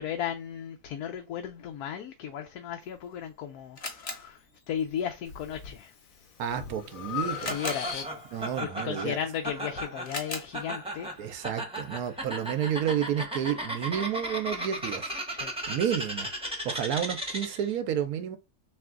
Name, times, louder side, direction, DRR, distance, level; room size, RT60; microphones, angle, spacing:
voice 1, 0.0-5.9 7.2-11.1 15.3-15.8, left 9 dB, 90° left, 1.1 m, -36 dB
Camera, 2.8-12.7, left 3 dB, 45° left, 1.3 m, -45 dB
Breathing, 5.2-5.7 6.2-8.5, left 8 dB, 65° left, 1.2 m, -37 dB
voice 2, 6.4-7.6 8.3-9.2 11.2-15.1 15.7-16.3 16.6-18.4, right 9 dB, 80° right, 1.1 m, -30 dB
Laughter, 7.5-17.7, right 1 dB, 5° right, 0.7 m, -36 dB
3.4 x 3.1 x 3.7 m
omnidirectional pair, 1.6 m